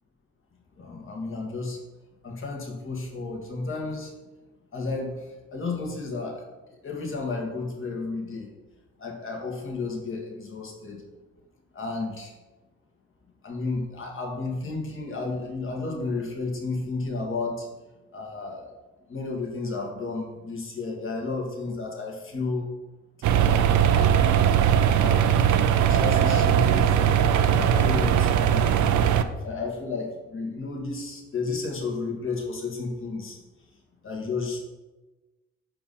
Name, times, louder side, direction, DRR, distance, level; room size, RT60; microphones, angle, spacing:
voice 1, 0.8-1.8 2.2-4.1 4.7-6.5 6.7-8.5 9.0-11.0 11.7-12.4 13.4-17.7 18.1-18.7 19.1-22.7 23.7-24.2 25.0-25.4 25.7-27.2 27.5-28.7 29.4-33.4 34.0-34.6, left 3 dB, 45° left, 1 dB, 1.8 m, -32 dB
sound 1, 23.2-29.2, right 9 dB, 70° right, 0.5 m, -20 dB
5.5 x 4.6 x 5.5 m, 1.1 s
cardioid pair, 90°, 30 cm